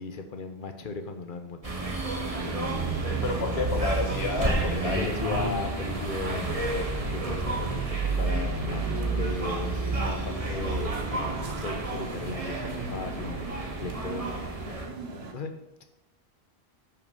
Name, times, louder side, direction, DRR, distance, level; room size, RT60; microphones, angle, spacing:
voice 1, 0.0-1.6 4.8-13.5 13.8-14.4 15.3-15.8, left 4 dB, 55° left, 7 dB, 1.1 m, -37 dB
sound 1, 1.6-14.9, right 2 dB, 35° right, 1.4 m, -30 dB
sound 2, 2.2-15.3, right 3 dB, 80° right, 1.4 m, -41 dB
voice 2, 3.2-5.2, left 3 dB, 80° left, 2 dB, 1.7 m, -30 dB
9.9 x 5.6 x 5.4 m, 0.91 s
omnidirectional pair, 1.0 m